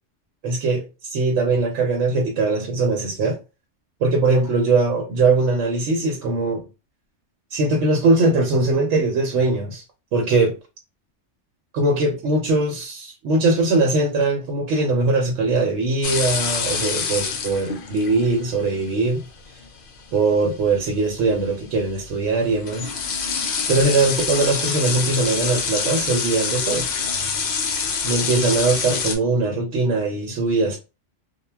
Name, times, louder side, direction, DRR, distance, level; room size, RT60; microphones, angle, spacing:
voice 1, 0.4-3.4 4.0-6.6 7.5-9.8 10.1-10.5 11.7-19.2 20.1-22.9 23.7-26.9 28.0-30.8, right 3 dB, 85° right, 1.0 m, -21 dB
sound 1, 16.0-29.2, left 5 dB, 60° left, 0.6 m, -26 dB
2.2 x 2.2 x 3.2 m
omnidirectional pair, 1.2 m